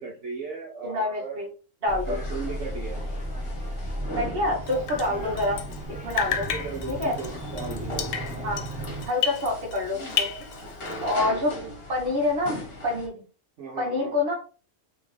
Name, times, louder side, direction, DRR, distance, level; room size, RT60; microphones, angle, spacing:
voice 1, 0.0-1.4 2.1-3.0 5.1-5.4 6.3-8.0 11.3-11.7 13.6-14.1, right 4 dB, 65° right, -3 dB, 1.2 m, -37 dB
voice 2, 0.8-1.5 1.8-2.2 4.1-5.6 6.0-6.5 6.9-7.2 8.4-8.7 9.1-10.3 11.0-11.5 11.9-12.6 12.8-13.2 13.8-14.3, left 2 dB, 45° right, -1 dB, 1.6 m, -26 dB
sound 1, 1.9-9.1, right 1 dB, 5° right, 0.8 m, -35 dB
sound 2, 2.0-13.1, left 1 dB, 50° left, 1.5 m, -39 dB
Drip, 4.7-5.8 6.1-9.8 10.1-11.1, left 9 dB, 80° left, 1.0 m, -32 dB
3.5 x 3.3 x 3.3 m, 0.37 s
omnidirectional pair, 1.4 m